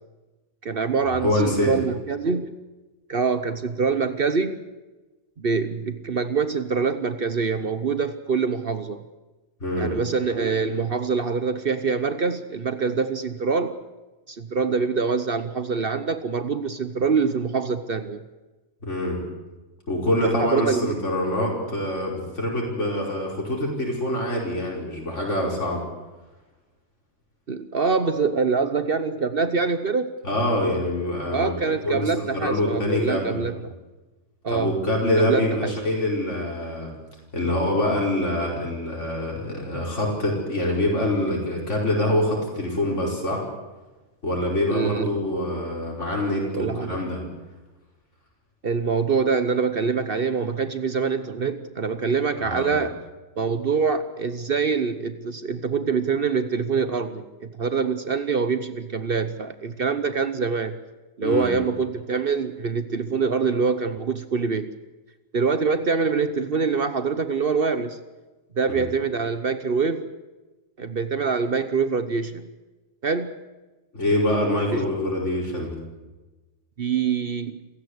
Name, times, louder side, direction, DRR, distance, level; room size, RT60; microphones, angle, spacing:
voice 1, 0.6-2.6 3.1-4.6 5.4-9.0 9.7-13.8 14.3-18.2 20.2-20.9 27.5-30.1 31.3-33.7 34.4-34.7 35.2-35.7 44.7-45.2 46.5-47.0 48.6-53.0 53.4-60.8 61.2-64.7 65.3-68.0 68.6-70.1 70.8-72.5 73.0-73.3 74.7-74.9 76.8-77.6, right 5 dB, 50° right, 11 dB, 1.2 m, -25 dB
voice 2, 1.1-1.8 9.6-9.9 18.8-19.2 19.9-25.8 30.2-33.4 34.5-36.9 37.3-43.4 44.2-47.2 52.4-52.8 61.2-61.5 68.8-68.9 73.9-75.8, left 1 dB, 80° left, -2 dB, 5.4 m, -25 dB
28.0 x 16.0 x 8.1 m, 1.2 s
omnidirectional pair, 1.2 m